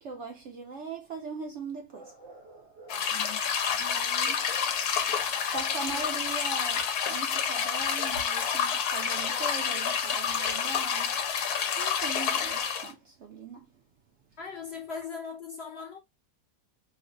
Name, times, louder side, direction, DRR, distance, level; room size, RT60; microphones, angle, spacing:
voice 1, 0.0-3.2 3.8-13.7, right 3 dB, 70° right, 0.7 m, -41 dB
sound 1, 2.9-12.9, left 7 dB, 80° left, 1.2 m, -29 dB
voice 2, 14.4-16.0, left 5 dB, 60° left, 0.7 m, -39 dB
3.1 x 2.1 x 3.7 m
omnidirectional pair, 1.6 m